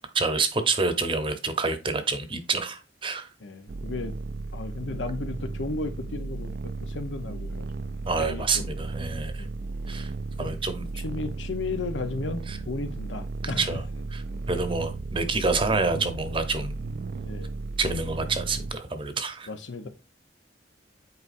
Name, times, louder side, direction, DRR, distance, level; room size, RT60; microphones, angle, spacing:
voice 1, 0.1-3.3 8.1-9.4 9.9-10.1 10.4-10.9 12.5-12.6 13.6-13.8 14.1-16.8 17.8-19.5, right 3 dB, 30° right, 0.8 m, -27 dB
voice 2, 3.4-4.1 4.5-7.8 8.2-8.6 9.4-9.5 10.4-10.6 10.9-13.7 17.2-17.5 19.5-19.9, left 3 dB, 85° left, 0.8 m, -34 dB
sound 1, 3.7-18.7, right 3 dB, 55° right, 0.4 m, -35 dB
8.1 x 4.7 x 2.6 m
head